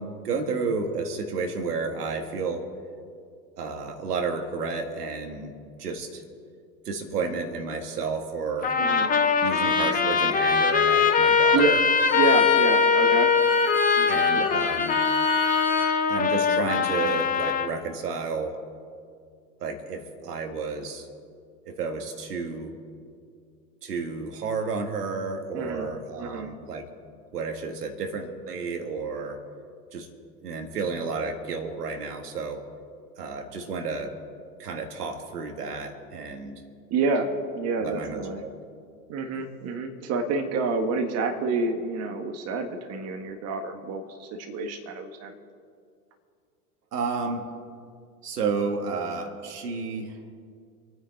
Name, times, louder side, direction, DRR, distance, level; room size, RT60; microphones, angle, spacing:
voice 1, 0.0-2.7 3.6-5.5 5.8-6.2 6.9-8.7 9.4-11.8 14.1-15.0 16.1-18.6 19.6-21.1 21.7-22.8 23.8-26.8 27.3-29.4 29.9-30.1 30.4-32.6 33.2-34.2 34.6-36.6 37.8-38.5 46.9-47.5 48.2-50.2, right 4 dB, 75° right, 4 dB, 2.1 m, -31 dB
Trumpet, 8.6-17.7, left 5 dB, 15° left, 1.1 m, -22 dB
voice 2, 8.8-9.1 11.5-11.7 12.1-13.3 14.0-14.5 25.5-25.9 26.2-26.5 36.9-38.4 39.1-45.3, right 3 dB, 30° right, 4 dB, 1.6 m, -28 dB
Bowed string instrument, 10.7-15.9, left 1 dB, 5° right, 3.0 m, -36 dB
28.0 x 9.4 x 4.2 m, 2.2 s
hypercardioid pair, 100°, 47 cm